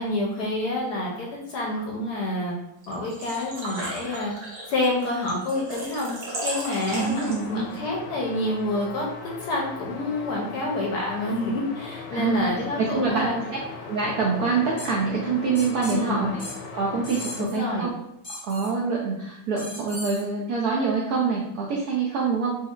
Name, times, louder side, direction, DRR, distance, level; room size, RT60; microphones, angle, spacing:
voice 1, 0.0-2.6 2.9-4.3 4.7-6.1 6.4-7.2 7.5-13.4 15.8-16.3 17.4-17.9, left 2 dB, 70° left, -1 dB, 1.0 m, -28 dB
Engine / Trickle dribble / Fill (with liquid), 2.8-7.7, right 1 dB, 55° right, 1.2 m, -36 dB
sound 1, 6.9-17.5, left 4 dB, 85° left, 1.4 m, -39 dB
voice 2, 6.9-7.7 12.1-12.5 12.8-13.3 13.9-16.4 16.7-17.9 18.3-22.6, right 4 dB, 75° right, -3 dB, 0.9 m, -25 dB
sound 2, 14.8-14.9 15.6-16.0 16.4-16.6 17.0-17.6 18.2-18.7 19.6-20.2, left 1 dB, 35° left, 0.5 m, -37 dB
4.3 x 2.7 x 2.3 m, 0.79 s
omnidirectional pair, 2.1 m